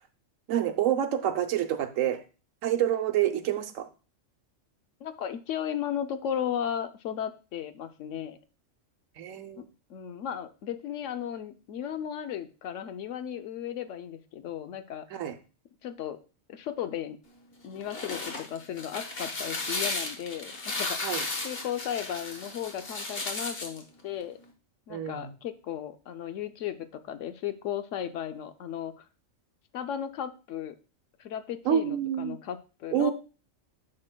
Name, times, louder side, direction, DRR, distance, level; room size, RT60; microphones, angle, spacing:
voice 1, 0.5-2.2 2.6-3.8 9.2-9.6 15.1-15.3 21.0-21.2 24.9-25.3 31.7-32.4 32.9-33.1, right 10 dB, 80° right, 8 dB, 1.1 m, -27 dB
voice 2, 5.0-8.4 9.6-9.7 9.9-15.0 15.8-16.2 16.5-17.2 17.6-21.0 21.4-24.4 24.9-29.0 29.7-30.7 31.2-33.1, left 9 dB, 75° left, 10 dB, 0.9 m, -35 dB
sound 1, 17.7-23.8, left 3 dB, 50° left, 1.4 m, -34 dB
9.6 x 6.6 x 2.2 m, 0.34 s
omnidirectional pair, 1.3 m